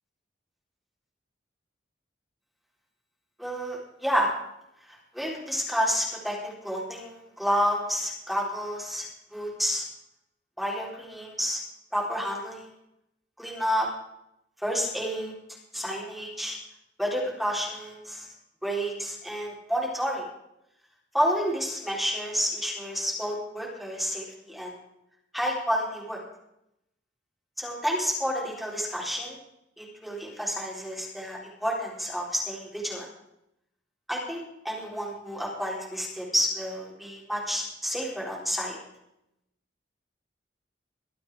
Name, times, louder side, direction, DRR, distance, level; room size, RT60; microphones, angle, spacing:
voice 1, 3.4-4.3 4.9-9.1 9.3-9.8 10.6-11.6 11.9-12.7 13.4-13.9 14.6-15.3 15.7-16.6 17.0-18.3 18.6-20.2 21.1-24.8 25.3-26.2 27.6-29.4 29.8-33.1 34.1-38.8, equal, ahead, -3 dB, 3.9 m, -30 dB
23.0 x 8.4 x 4.8 m, 0.81 s
head